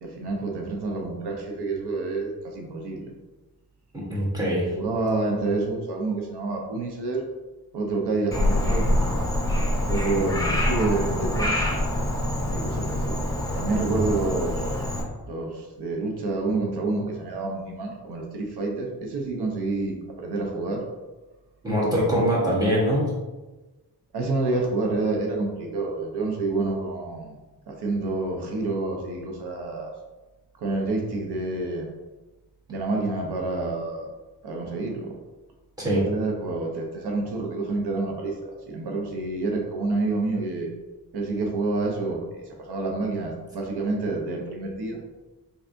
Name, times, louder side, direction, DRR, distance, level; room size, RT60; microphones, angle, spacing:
voice 1, 0.0-3.1 4.7-7.2 7.7-8.8 9.9-11.6 12.5-13.2 13.5-14.7 15.3-20.8 21.8-22.2 24.1-27.4 27.7-29.9 30.6-31.9 32.7-34.1 34.4-35.1 35.8-40.7 41.1-45.0, right 3 dB, 90° right, 1 dB, 0.8 m, -28 dB
voice 2, 3.9-4.7 10.2-10.3 13.8-14.0 21.6-23.0 35.8-36.0, equal, 10° right, -6 dB, 1.2 m, -23 dB
Frog, 8.3-15.0, left 1 dB, 10° left, 0.7 m, -25 dB
4.0 x 3.3 x 2.6 m, 1.1 s
wide cardioid pair, 125°, 39 cm